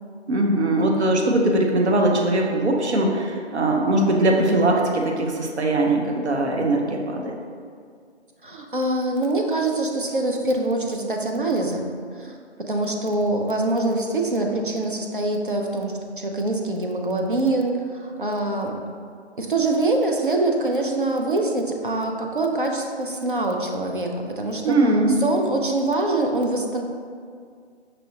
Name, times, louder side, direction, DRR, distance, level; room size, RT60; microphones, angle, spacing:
voice 1, 0.3-7.3 24.6-25.2, right 2 dB, 75° right, 1 dB, 0.7 m, -21 dB
voice 2, 8.4-18.7 19.4-24.7 25.2-26.8, right 2 dB, 50° right, 2 dB, 0.4 m, -24 dB
5.4 x 2.7 x 2.7 m, 2.2 s
figure-of-eight pair, 175°, 34 cm